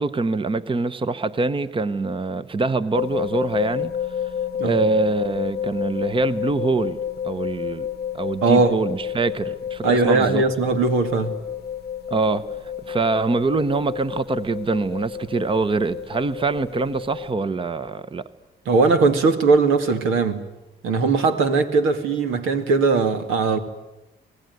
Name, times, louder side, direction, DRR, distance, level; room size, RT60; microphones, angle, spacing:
voice 1, 0.0-3.9 4.6-7.0 7.2-7.9 8.1-10.4 12.1-12.4 12.9-18.2, right 3 dB, 25° right, 1.0 m, -24 dB
sound 1, 2.9-17.3, left 9 dB, 55° left, 0.8 m, -30 dB
voice 2, 8.4-8.8 9.8-11.4 18.7-20.4 20.8-23.6, right 4 dB, 85° right, 2.4 m, -19 dB
26.0 x 18.5 x 9.4 m
cardioid pair, 90°, 20 cm